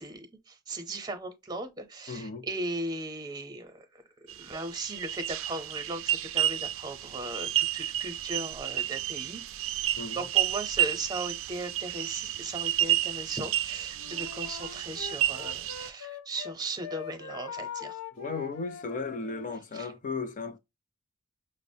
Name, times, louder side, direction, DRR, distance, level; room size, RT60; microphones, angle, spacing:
voice 1, 0.0-4.0 4.4-9.7 10.1-18.0 19.7-19.9, right 2 dB, 20° right, 0.7 m, -37 dB
voice 2, 2.1-2.5 10.0-10.2 18.2-20.6, left 4 dB, 40° left, 0.5 m, -35 dB
sound 1, 4.3-15.9, right 13 dB, 65° right, 0.4 m, -31 dB
Wind instrument woodwind instrument, 13.9-16.5 16.8-19.6, left 6 dB, 85° left, 0.6 m, -42 dB
5.8 x 2.0 x 2.7 m
head